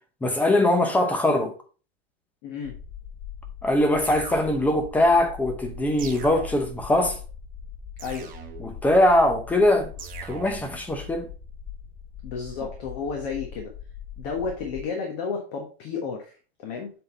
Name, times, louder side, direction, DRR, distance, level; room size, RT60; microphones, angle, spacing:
voice 1, 0.2-1.5 3.6-7.2 8.6-9.9 10.3-11.3, left 1 dB, 5° left, 0.7 m, -21 dB
voice 2, 2.4-2.8 8.0-8.3 12.2-13.7 14.2-16.9, left 5 dB, 45° left, 1.4 m, -32 dB
sound 1, 2.6-14.8, left 8 dB, 25° left, 1.9 m, -41 dB
sound 2, 4.0-4.9 6.0-6.9 8.0-8.9 10.0-10.9, right 6 dB, 25° right, 1.1 m, -41 dB
7.6 x 3.8 x 3.9 m
supercardioid pair, 160°, 30 cm